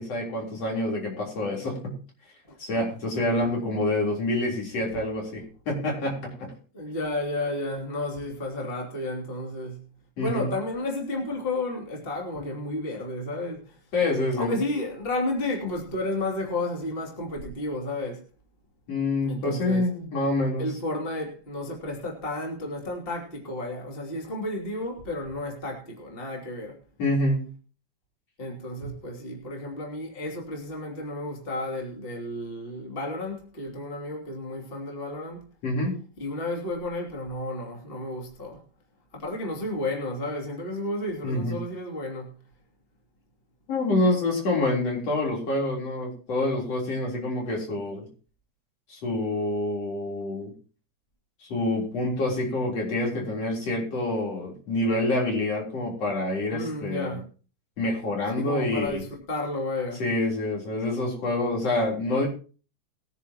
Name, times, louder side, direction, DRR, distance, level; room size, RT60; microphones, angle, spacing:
voice 1, 0.0-1.9 2.6-6.5 10.2-10.5 13.9-14.5 18.9-20.7 27.0-27.5 35.6-35.9 41.2-41.6 43.7-48.1 48.9-50.5 51.4-57.2 57.8-59.0 60.0-62.3, left 2 dB, 50° left, 4.9 m, -27 dB
voice 2, 6.7-9.8 10.2-13.8 14.3-18.2 19.2-19.9 20.6-26.8 28.4-35.4 36.2-38.6 39.1-42.4 56.5-57.2 58.3-60.0, left 2 dB, 20° left, 2.8 m, -32 dB
21.5 x 10.0 x 3.0 m
omnidirectional pair, 3.5 m